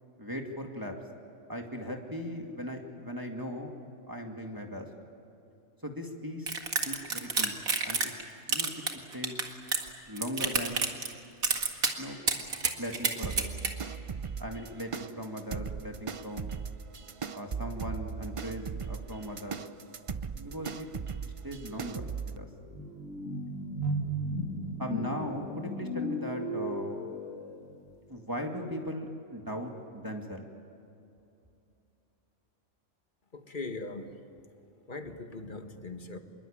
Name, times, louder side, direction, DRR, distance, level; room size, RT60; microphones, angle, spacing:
voice 1, 0.2-1.0 1.5-3.7 4.1-4.9 5.8-6.5 6.8-7.5 7.8-8.1 8.5-9.4 10.1-10.8 12.0-12.2 12.8-13.5 14.4-16.5 17.3-19.6 20.4-20.9 21.2-22.5 24.8-27.0 28.1-30.5, equal, 15° right, 2 dB, 2.1 m, -38 dB
sound 1, 6.5-8.2 8.5-9.9 10.2-11.1 11.4-11.9 12.3-13.7, right 4 dB, 75° right, 2.4 m, -29 dB
sound 2, 13.2-22.4, right 5 dB, 50° right, 0.3 m, -38 dB
sound 3, 21.6-27.7, equal, 60° left, 2.7 m, -35 dB
voice 2, 33.3-34.1 34.9-36.2, left 3 dB, 35° left, 6 dB, 1.8 m, -40 dB
26.5 x 22.5 x 8.8 m, 2.7 s
omnidirectional pair, 1.5 m